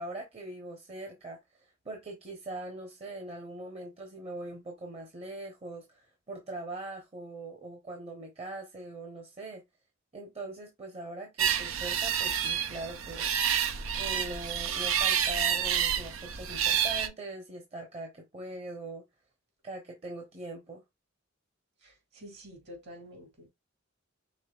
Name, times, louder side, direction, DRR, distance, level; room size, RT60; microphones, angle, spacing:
voice 1, 0.0-9.6 10.1-13.3 13.9-19.0 19.6-20.8, right 2 dB, 30° right, 1.0 m, -41 dB
sound 1, 11.4-17.1, right 9 dB, 80° right, 0.7 m, -29 dB
voice 2, 21.8-23.5, equal, 55° right, 2.3 m, -49 dB
5.3 x 3.6 x 2.4 m
head